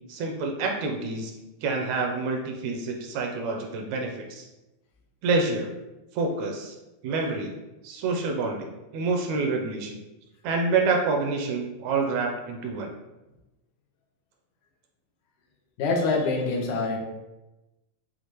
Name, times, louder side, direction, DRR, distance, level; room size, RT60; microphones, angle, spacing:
voice 1, 0.1-1.3 1.6-4.5 5.2-5.7 6.1-6.8 7.0-7.5 7.8-10.0 10.4-12.9, right 3 dB, 80° right, 2 dB, 1.7 m, -27 dB
voice 2, 15.8-17.0, left 3 dB, 90° left, 0 dB, 2.2 m, -25 dB
6.5 x 2.4 x 2.9 m, 1.0 s
omnidirectional pair, 3.4 m